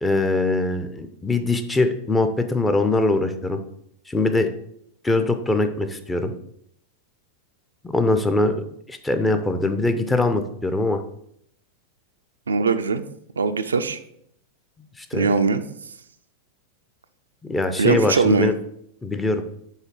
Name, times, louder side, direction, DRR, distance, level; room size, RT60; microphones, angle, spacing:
voice 1, 0.0-3.6 4.1-4.5 5.0-6.3 7.8-8.6 8.9-11.0 15.0-15.3 17.4-18.5 19.0-19.4, left 2 dB, 10° left, 7 dB, 0.5 m, -22 dB
voice 2, 12.5-13.0 13.4-14.0 15.1-15.6 17.8-18.5, right 4 dB, 70° right, 9 dB, 0.3 m, -20 dB
5.6 x 3.8 x 4.6 m, 0.71 s
figure-of-eight pair, 90°, 0 cm